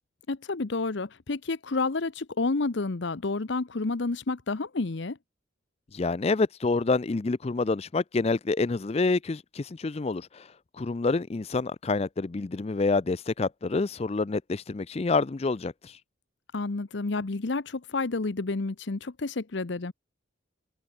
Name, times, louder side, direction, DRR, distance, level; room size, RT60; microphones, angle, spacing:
voice 1, 0.3-5.2 16.5-19.9, left 3 dB, 60° left, 0.8 m, -30 dB
voice 2, 5.9-10.5 10.8-15.9, left 3 dB, 30° left, 0.4 m, -27 dB
head